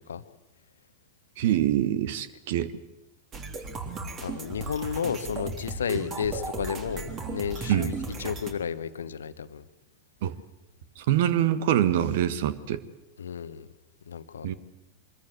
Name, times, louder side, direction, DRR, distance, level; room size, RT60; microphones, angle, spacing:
voice 1, 1.4-2.7 7.7-7.9 10.2-10.3 11.0-12.8 14.4-14.5, right 11 dB, 55° right, 15 dB, 1.4 m, -24 dB
sound 1, 3.3-8.5, right 3 dB, 30° right, 3.5 m, -36 dB
voice 2, 4.2-7.9 8.2-9.7 13.2-13.7 14.1-14.5, left 7 dB, 70° left, 13 dB, 1.2 m, -32 dB
24.5 x 21.5 x 8.0 m, 1.0 s
figure-of-eight pair, 90°, 0 cm